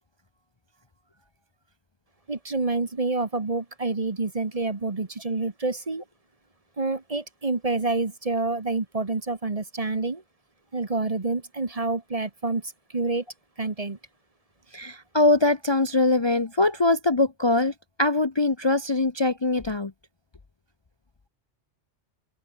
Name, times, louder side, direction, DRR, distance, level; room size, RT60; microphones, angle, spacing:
voice 1, 2.3-6.0 6.8-10.2 10.7-13.2 13.6-14.0, right 3 dB, 30° right, 1.4 m, -28 dB
voice 2, 14.7-17.7 18.0-19.9, left 2 dB, 25° left, 0.8 m, -22 dB
open air
omnidirectional pair, 1.2 m